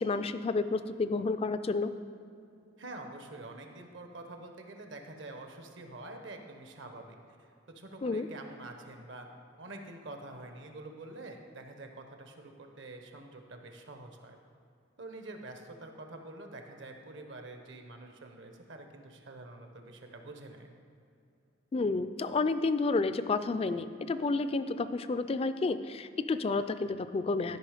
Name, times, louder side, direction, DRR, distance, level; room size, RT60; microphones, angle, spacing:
voice 1, 0.0-1.9 8.0-8.3 21.7-27.6, left 3 dB, 30° left, 12 dB, 0.3 m, -30 dB
voice 2, 2.8-7.2 7.7-9.3 9.6-14.4 15.0-20.7, right 2 dB, 65° right, 4 dB, 1.0 m, -46 dB
12.0 x 5.5 x 5.0 m, 2.5 s
head